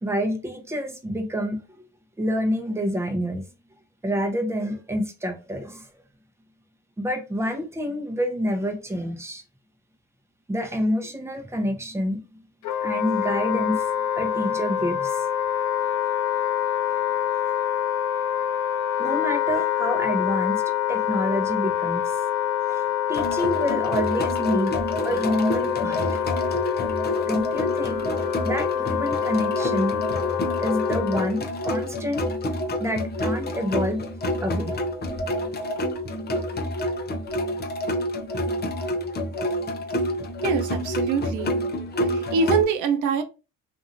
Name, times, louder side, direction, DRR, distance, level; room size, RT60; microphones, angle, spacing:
voice 1, 0.0-1.9 2.2-3.4 4.0-5.9 7.0-9.4 10.5-12.2 12.8-13.9 14.2-15.3 16.9-17.0 19.0-20.6 20.9-22.2 22.7-24.7 25.0-26.2 27.3-28.1 28.4-30.0 30.6-32.2 32.8-34.0 34.4-34.7, equal, 10° right, 0.7 m, -27 dB
Wind instrument woodwind instrument, 12.6-31.3, left 10 dB, 85° left, 0.5 m, -26 dB
sound 1, 23.1-42.6, left 1 dB, 35° left, 0.6 m, -28 dB
voice 2, 40.4-41.5 42.0-43.2, right 5 dB, 80° right, 0.6 m, -24 dB
2.8 x 2.5 x 2.6 m
cardioid pair, 90°, 30 cm